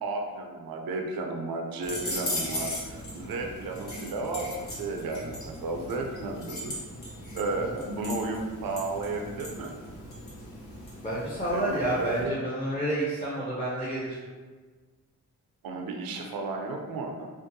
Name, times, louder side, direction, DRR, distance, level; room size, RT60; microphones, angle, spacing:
voice 1, 0.0-6.8 7.3-9.7 11.5-12.4 15.6-17.3, right 3 dB, 65° right, 2 dB, 0.5 m, -33 dB
sound 1, 1.8-12.2, left 1 dB, 70° left, 0.9 m, -38 dB
voice 2, 11.0-14.2, right 1 dB, 20° left, -8 dB, 0.7 m, -29 dB
2.6 x 2.2 x 2.6 m, 1.4 s
cardioid pair, 50°, 38 cm